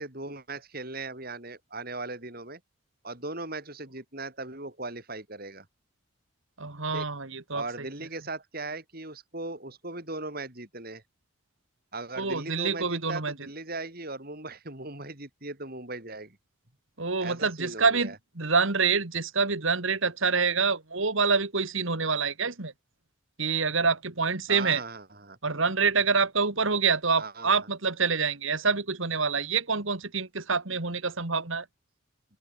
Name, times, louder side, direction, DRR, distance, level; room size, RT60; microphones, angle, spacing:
voice 1, 0.0-2.6 3.0-5.7 6.9-7.1 7.5-11.0 11.9-16.4 17.2-18.1 24.5-25.4 27.2-27.5, right 2 dB, 45° right, 4.8 m, -38 dB
voice 2, 6.6-7.9 12.2-13.5 17.0-22.7 23.4-24.8 25.4-31.7, right 5 dB, 65° right, 2.0 m, -26 dB
open air
head